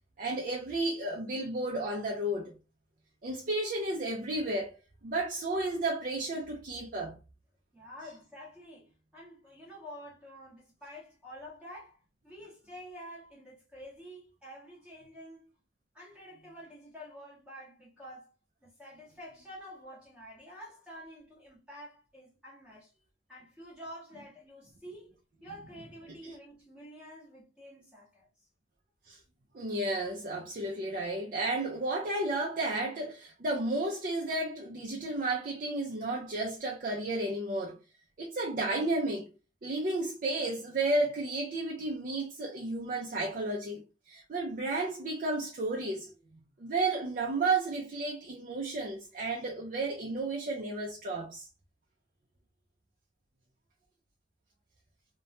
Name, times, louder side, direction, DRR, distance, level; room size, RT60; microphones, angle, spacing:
voice 1, 0.2-2.5 3.2-4.7 5.0-7.1 26.2-26.3 29.1-29.2 29.5-37.8 38.2-39.3 39.6-46.1 46.6-51.5, right 2 dB, 50° right, 0.5 m, -32 dB
voice 2, 7.7-12.0 12.2-15.5 15.9-18.3 18.6-22.9 23.3-25.2 25.4-28.3, equal, 5° right, 0.9 m, -49 dB
2.9 x 2.1 x 2.6 m
head